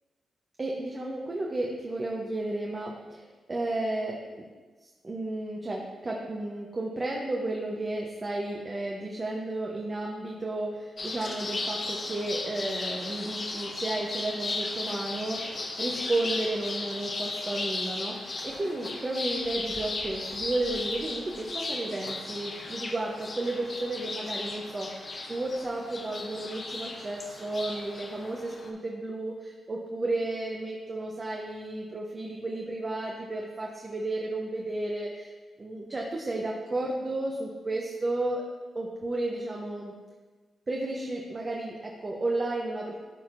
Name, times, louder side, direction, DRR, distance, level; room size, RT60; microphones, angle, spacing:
voice 1, 0.6-4.2 5.0-35.3 35.6-38.4 38.7-39.9 40.7-42.9, right 2 dB, 35° right, -2 dB, 0.8 m, -33 dB
sound 1, 11.0-28.7, left 2 dB, 45° left, 0.8 m, -36 dB
11.5 x 4.3 x 2.6 m, 1.3 s
cardioid pair, 70°, 0 cm